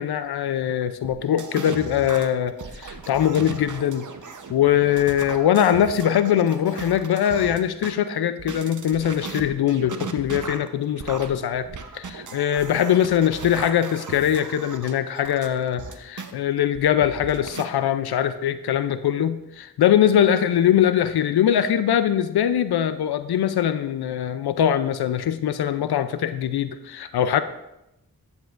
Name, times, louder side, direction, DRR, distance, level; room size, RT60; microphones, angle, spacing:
voice 1, 0.0-4.1 4.5-11.7 11.9-27.4, left 10 dB, 85° left, 12 dB, 0.5 m, -22 dB
sound 1, 1.0-7.9 8.4-16.3 16.7-17.6, right 5 dB, 55° right, 0.8 m, -37 dB
11.5 x 7.2 x 2.5 m, 0.90 s
cardioid pair, 45°, 37 cm